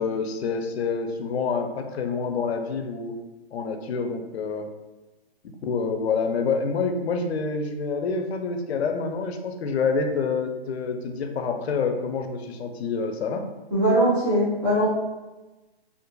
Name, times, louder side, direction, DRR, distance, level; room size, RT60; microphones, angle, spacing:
voice 1, 0.0-3.1 3.5-4.7 5.6-13.4, left 5 dB, 80° left, 5 dB, 0.5 m, -27 dB
voice 2, 13.7-14.9, right 1 dB, 20° right, -10 dB, 0.7 m, -21 dB
2.5 x 2.5 x 2.2 m, 1.1 s
hypercardioid pair, 175°, 31 cm